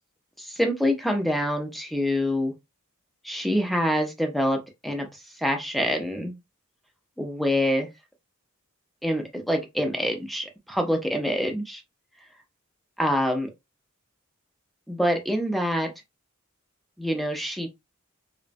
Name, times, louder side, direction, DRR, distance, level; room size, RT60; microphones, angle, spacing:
voice 1, 0.4-2.5 3.2-6.3 7.2-7.9 9.0-11.8 13.0-13.5 14.9-15.9 17.0-17.7, equal, ahead, 0.5 m, -26 dB
3.1 x 2.0 x 2.5 m
head